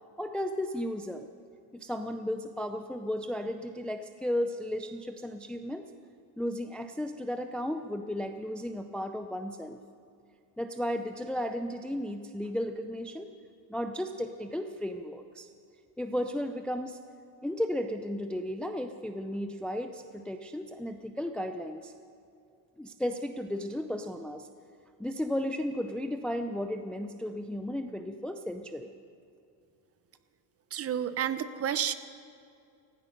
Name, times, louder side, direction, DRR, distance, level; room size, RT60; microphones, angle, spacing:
voice 1, 0.2-1.3 1.7-5.9 6.4-9.8 10.6-13.3 13.7-15.5 16.0-17.0 17.4-21.9 22.8-24.5 25.0-28.9, left 1 dB, ahead, 7 dB, 0.4 m, -34 dB
voice 2, 30.7-31.9, right 9 dB, 35° right, 13 dB, 0.7 m, -30 dB
15.5 x 15.5 x 5.3 m, 2.5 s
cardioid pair, 120°, 43 cm